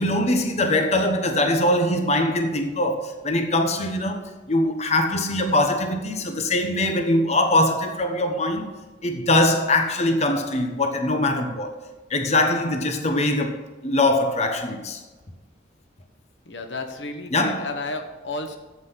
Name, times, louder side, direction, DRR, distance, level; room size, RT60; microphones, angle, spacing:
voice 1, 0.0-4.2 4.5-11.7 12.1-15.0 17.3-17.7, left 1 dB, 35° left, 1.0 m, -22 dB
voice 2, 16.4-18.6, left 2 dB, 85° left, 1.3 m, -32 dB
9.6 x 7.9 x 5.7 m
head